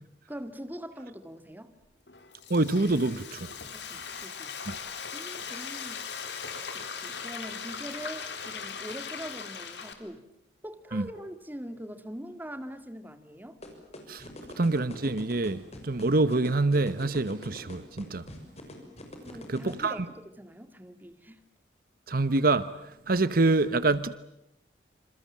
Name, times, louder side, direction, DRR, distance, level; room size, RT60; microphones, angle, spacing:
voice 1, 0.3-1.7 3.7-4.6 5.1-6.0 6.7-10.3 10.6-13.6 19.2-21.4, equal, 10° right, 2.2 m, -43 dB
Frying (food), 2.1-9.9, left 6 dB, 75° left, 3.8 m, -39 dB
voice 2, 2.5-3.5 4.7-4.8 10.9-11.0 14.1-14.3 14.6-18.3 19.5-20.1 22.1-24.2, right 2 dB, 55° right, 1.0 m, -26 dB
sound 1, 13.6-19.9, left 1 dB, 40° left, 6.5 m, -43 dB
27.5 x 27.5 x 7.5 m
head